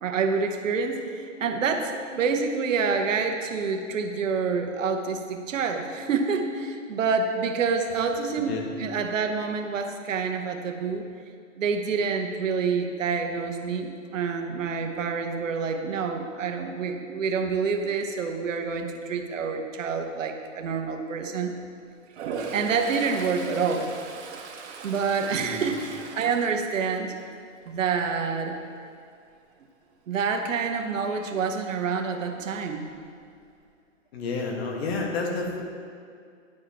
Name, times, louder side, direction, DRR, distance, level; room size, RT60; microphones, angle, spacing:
voice 1, 0.0-11.0 11.6-21.5 22.5-23.9 24.8-27.1 27.7-28.5 30.1-32.8, right 5 dB, 75° right, 4 dB, 1.1 m, -27 dB
voice 2, 8.4-8.7 25.3-25.7 34.1-35.6, left 3 dB, 50° left, 1 dB, 1.6 m, -30 dB
Toilet flush, 22.1-27.3 27.7-28.0 32.5-32.6 32.9-33.6, right 4 dB, 60° right, 1.4 m, -39 dB
10.5 x 4.8 x 4.3 m, 2.3 s
hypercardioid pair, 130°, 38 cm